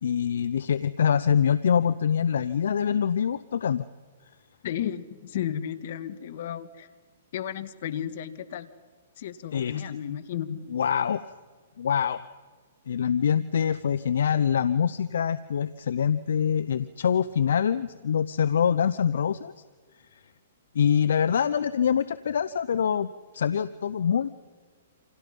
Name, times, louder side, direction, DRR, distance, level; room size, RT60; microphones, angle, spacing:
voice 1, 0.0-3.8 9.5-9.8 10.7-11.3 11.8-12.2 12.9-19.5 20.7-24.3, left 8 dB, 75° left, 15 dB, 0.8 m, -25 dB
voice 2, 4.6-6.9 7.3-8.7 9.2-10.7, left 10 dB, 55° left, 12 dB, 1.9 m, -33 dB
29.0 x 27.5 x 5.5 m, 1.5 s
hypercardioid pair, 135°, 0 cm